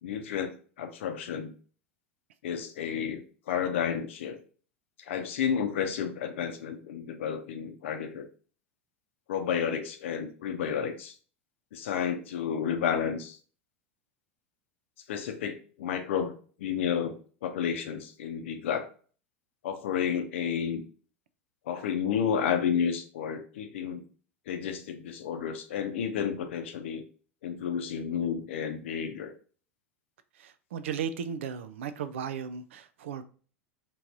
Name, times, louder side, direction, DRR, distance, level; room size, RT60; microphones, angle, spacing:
voice 1, 0.0-1.5 2.4-4.4 5.0-8.3 9.3-11.1 11.7-13.4 15.1-17.2 17.4-18.9 19.6-20.8 21.7-24.0 24.5-27.0 27.4-29.3, left 7 dB, 65° left, 0.7 m, -31 dB
voice 2, 30.4-33.2, right 7 dB, 65° right, 0.4 m, -35 dB
4.4 x 3.0 x 2.5 m
figure-of-eight pair, 85°, 7 cm